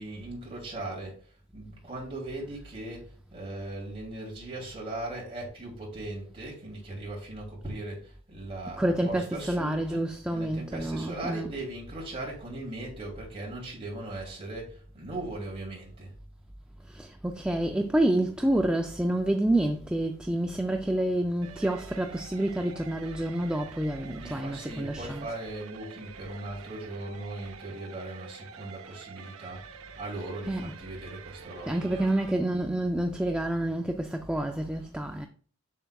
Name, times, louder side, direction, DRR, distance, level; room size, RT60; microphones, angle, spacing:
voice 1, 0.0-10.0 10.3-16.1 24.0-32.1, right 2 dB, 25° right, 2.7 m, -39 dB
voice 2, 8.8-11.5 16.9-25.3 30.4-30.7 31.6-35.3, right 1 dB, 5° right, 0.3 m, -28 dB
sound 1, 21.4-32.3, right 6 dB, 70° right, 0.5 m, -47 dB
7.4 x 6.9 x 2.3 m
head